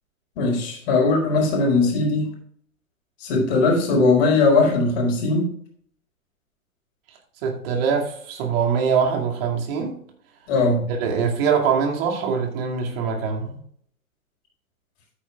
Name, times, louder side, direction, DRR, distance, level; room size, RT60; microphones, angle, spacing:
voice 1, 0.4-2.3 3.2-5.5 10.5-10.8, left 3 dB, 45° left, 4.6 m, -19 dB
voice 2, 7.4-10.0 11.0-13.6, right 6 dB, 45° right, 2.3 m, -23 dB
13.0 x 9.3 x 2.4 m
figure-of-eight pair, 105°, 42 cm